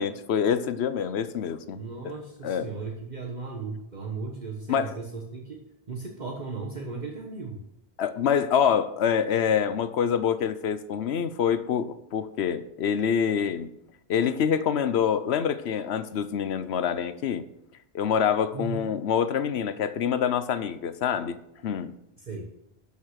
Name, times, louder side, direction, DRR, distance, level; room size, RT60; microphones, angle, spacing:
voice 1, 0.0-1.8 2.0-2.1 2.4-2.7 4.7-4.9 8.0-13.7 14.1-17.5 17.9-21.4 21.6-21.9, left 8 dB, 85° left, 13 dB, 1.0 m, -26 dB
voice 2, 1.7-5.6 5.9-7.6 18.5-18.9 22.2-22.5, right 4 dB, 45° right, 1 dB, 1.3 m, -36 dB
12.0 x 5.6 x 6.4 m, 0.82 s
omnidirectional pair, 1.1 m